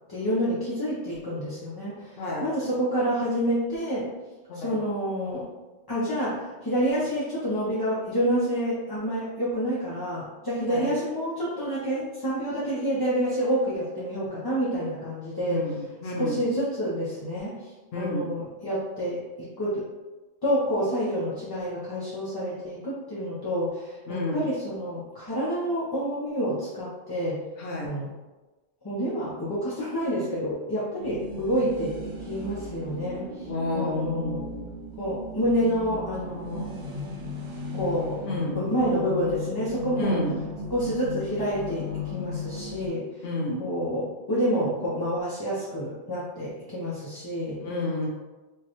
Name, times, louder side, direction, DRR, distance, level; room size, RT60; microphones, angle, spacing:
voice 1, 0.1-4.1 4.5-5.5 5.9-15.7 16.2-19.9 20.4-27.5 27.8-28.1 28.8-34.4 35.0-36.7 37.7-40.2 40.7-43.2 43.6-47.6, equal, 25° left, -9 dB, 0.6 m, -28 dB
voice 2, 2.2-2.5 4.5-4.8 10.6-10.9 15.5-16.4 17.9-18.3 24.1-24.5 27.6-27.9 33.5-34.6 38.2-38.6 40.0-40.3 43.2-43.6 47.6-48.1, left 2 dB, 60° left, -3 dB, 0.9 m, -30 dB
sound 1, 31.0-42.9, left 1 dB, 55° right, 0.7 m, -36 dB
4.8 x 2.2 x 2.9 m, 1.2 s
omnidirectional pair, 1.2 m